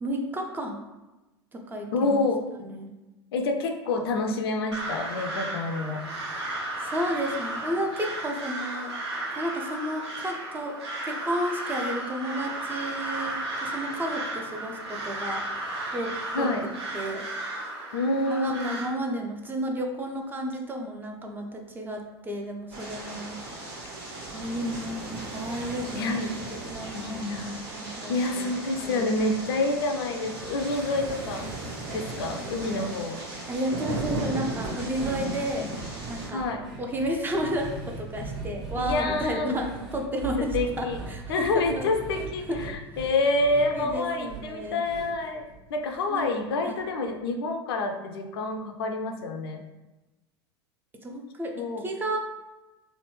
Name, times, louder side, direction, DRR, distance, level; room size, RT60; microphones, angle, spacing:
voice 1, 0.0-0.8 1.5-2.2 2.7-2.9 6.8-8.9 9.4-10.8 11.0-15.5 15.9-16.5 16.9-17.3 18.3-23.4 24.3-26.1 26.6-29.1 33.5-35.7 36.1-36.4 36.8-41.9 42.5-42.6 43.7-44.8 46.1-46.3 46.7-46.8 51.0-52.2, equal, 15° right, 2 dB, 0.4 m, -32 dB
voice 2, 1.9-2.4 3.3-6.0 16.3-16.7 17.9-18.9 25.9-26.3 26.9-27.7 28.1-31.5 31.9-33.2 36.3-36.6 38.8-39.8 40.4-41.0 41.3-49.6 51.6-51.8, left 2 dB, 65° left, 5 dB, 0.4 m, -28 dB
Crow, 4.7-18.9, right 2 dB, 85° right, 0.7 m, -34 dB
sound 1, 22.7-36.3, right 2 dB, 70° right, 1.4 m, -36 dB
sound 2, 34.1-46.3 46.6-46.7 47.1-47.2, right 4 dB, 45° right, 1.5 m, -40 dB
3.2 x 2.1 x 3.0 m, 1.1 s
figure-of-eight pair, 80°, 14 cm